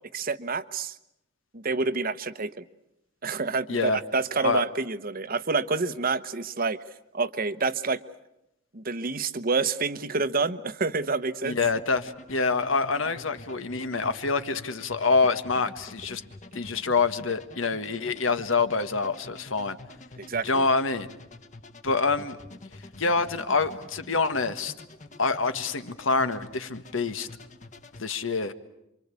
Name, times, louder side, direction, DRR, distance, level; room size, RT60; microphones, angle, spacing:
voice 1, 0.1-0.9 1.5-2.6 3.2-6.8 7.1-8.0 8.7-11.6 20.2-20.6, right 4 dB, 45° right, 12 dB, 1.0 m, -28 dB
voice 2, 3.7-4.0 4.4-4.6 11.4-16.2 16.5-19.8 20.4-21.1 21.8-22.4 23.0-24.7 25.2-27.3 28.0-28.5, left 4 dB, 80° left, 10 dB, 1.5 m, -26 dB
sound 1, 11.6-28.0, left 2 dB, 40° left, 1.5 m, -47 dB
27.5 x 25.0 x 8.4 m, 0.84 s
head